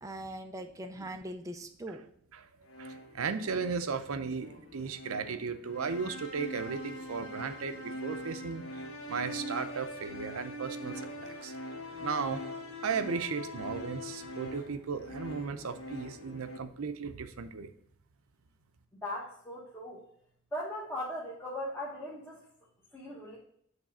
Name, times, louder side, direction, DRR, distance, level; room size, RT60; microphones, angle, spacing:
voice 1, 0.0-2.0, right 1 dB, 15° right, 6 dB, 0.4 m, -41 dB
sound 1, 2.7-16.6, left 1 dB, 70° left, 1.0 m, -43 dB
voice 2, 2.8-11.5 12.0-12.4 12.8-17.7, right 5 dB, 80° right, 10 dB, 0.6 m, -36 dB
voice 3, 18.9-20.0 20.5-22.4 22.9-23.4, left 1 dB, 10° left, -6 dB, 1.0 m, -38 dB
7.3 x 3.3 x 5.4 m, 0.69 s
head